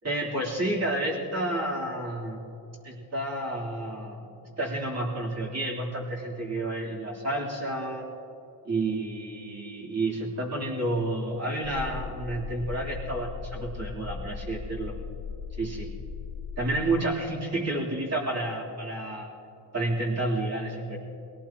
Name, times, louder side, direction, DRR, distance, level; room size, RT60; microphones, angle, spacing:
voice 1, 0.0-2.4 2.8-4.3 4.6-8.0 8.6-14.9 15.6-15.9 16.6-19.3 19.7-21.0, right 1 dB, 35° right, -5 dB, 3.4 m, -30 dB
sound 1, 11.6-17.0, left 5 dB, 35° left, 1.8 m, -38 dB
22.0 x 17.5 x 3.0 m, 2.8 s
cardioid pair, 95°, 44 cm